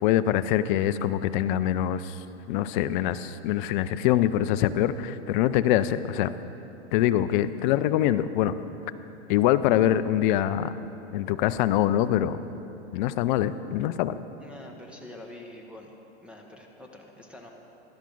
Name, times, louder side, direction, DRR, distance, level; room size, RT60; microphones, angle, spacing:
voice 1, 0.0-2.2 2.5-6.3 6.9-8.6 9.3-10.7 11.1-12.4 12.9-14.2, left 12 dB, 45° left, 13 dB, 0.5 m, -24 dB
voice 2, 14.4-16.0 16.2-17.5, left 1 dB, 5° right, 1 dB, 1.1 m, -45 dB
13.0 x 11.5 x 3.9 m, 3.0 s
hypercardioid pair, 110°, 35 cm